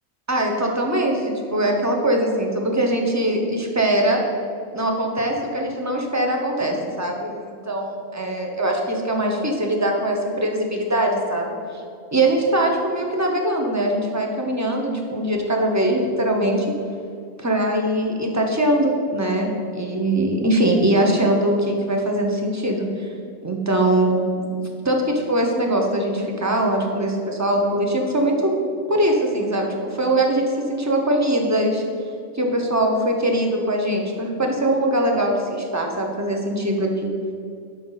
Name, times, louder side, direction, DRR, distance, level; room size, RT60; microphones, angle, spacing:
voice 1, 0.3-4.2 4.7-11.6 12.1-16.7 17.4-23.1 23.4-24.1 24.8-28.5 28.9-31.8 32.3-37.1, right 1 dB, 15° right, 1 dB, 0.9 m, -22 dB
11.5 x 5.9 x 4.1 m, 2.4 s
omnidirectional pair, 1.4 m